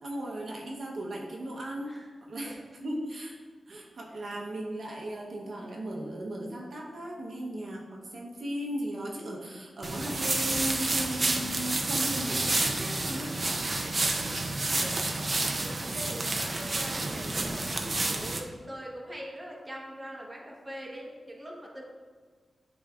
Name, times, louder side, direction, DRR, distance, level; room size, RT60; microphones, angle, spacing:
voice 1, 0.0-1.9 2.2-3.4 3.7-13.3, right 1 dB, 60° right, -2 dB, 0.9 m, -37 dB
sound 1, 9.8-18.4, right 2 dB, 35° right, 0.6 m, -29 dB
voice 2, 13.5-14.1 14.7-21.9, equal, 15° right, -3 dB, 1.1 m, -43 dB
10.0 x 4.0 x 2.4 m, 1.5 s
wide cardioid pair, 130°, 0 cm